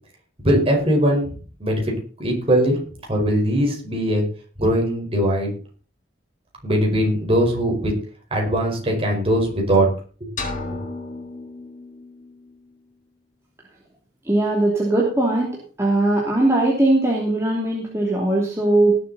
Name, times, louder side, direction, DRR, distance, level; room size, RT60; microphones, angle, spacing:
voice 1, 0.4-1.3 1.6-1.8 2.2-2.8 3.1-4.2 4.6-5.5 6.6-7.9 8.3-9.9 10.2-10.3, right 1 dB, 35° right, 0 dB, 4.9 m, -20 dB
sound 1, 10.4-12.3, left 3 dB, 45° left, 3.5 m, -33 dB
voice 2, 14.3-15.5 15.8-19.0, right 2 dB, 15° right, -3 dB, 2.9 m, -19 dB
19.5 x 7.5 x 4.2 m, 0.39 s
head